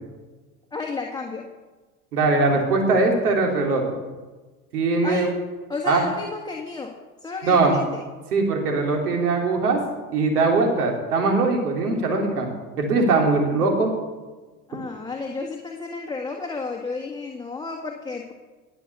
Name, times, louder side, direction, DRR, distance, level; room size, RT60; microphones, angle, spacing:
voice 1, 0.7-1.5 5.0-5.3 5.7-6.9 7.2-8.0 14.7-18.3, left 4 dB, 10° left, 0 dB, 1.7 m, -32 dB
voice 2, 2.1-3.8 4.7-5.3 5.8-6.0 7.5-7.8 8.3-9.8 10.1-12.5 12.8-13.9, right 3 dB, 85° right, 1 dB, 3.5 m, -21 dB
20.0 x 6.9 x 6.9 m, 1.3 s
hypercardioid pair, 85°, 45 cm